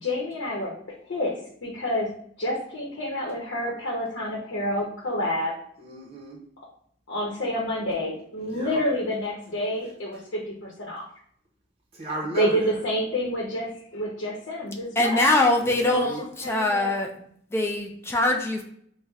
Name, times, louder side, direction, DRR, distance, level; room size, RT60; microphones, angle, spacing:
voice 1, 0.0-0.7 1.1-1.4 1.6-2.1 2.4-5.5 7.1-11.1 12.4-15.3 15.9-16.1 16.4-16.9, equal, 85° left, -4 dB, 0.8 m, -28 dB
voice 2, 5.8-6.4 8.5-8.8 11.9-12.7 15.6-16.2, right 1 dB, 30° right, -2 dB, 0.6 m, -35 dB
voice 3, 15.0-17.1 17.5-18.6, left 2 dB, 15° left, 1 dB, 0.3 m, -23 dB
5.3 x 2.1 x 2.3 m, 0.65 s
head